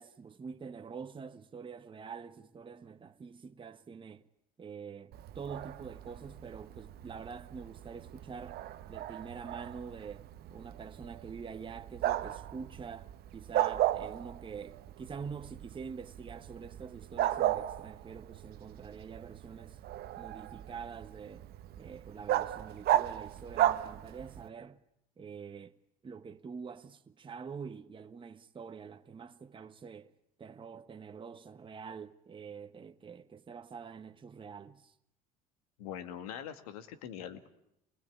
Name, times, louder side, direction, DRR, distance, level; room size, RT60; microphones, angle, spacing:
voice 1, 0.0-4.2 4.6-8.6 8.9-19.8 20.2-21.5 21.8-24.8 25.2-25.8 26.0-30.1 30.4-34.9, right 6 dB, 25° right, 1.2 m, -46 dB
Bark, 5.1-24.5, right 13 dB, 60° right, 1.0 m, -36 dB
voice 2, 35.8-37.5, left 9 dB, 85° left, 2.0 m, -43 dB
27.5 x 20.0 x 8.6 m
hypercardioid pair, 75°, 18 cm